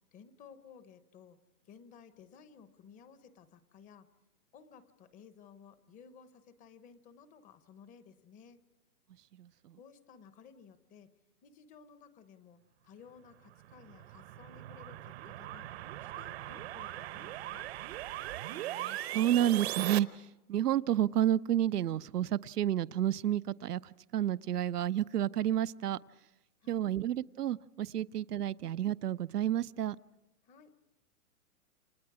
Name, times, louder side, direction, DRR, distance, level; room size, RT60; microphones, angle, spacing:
voice 1, 0.1-1.4 1.6-4.1 4.5-8.6 9.8-11.1 11.4-17.7 26.6-26.9 30.4-30.7, left 6 dB, 15° left, 0.9 m, -56 dB
voice 2, 9.3-9.8 18.5-26.0 26.7-30.0, right 11 dB, 85° right, 0.8 m, -31 dB
sound 1, 13.5-20.0, right 15 dB, 45° right, 0.9 m, -40 dB
29.0 x 26.0 x 4.8 m
hypercardioid pair, 140°, 46 cm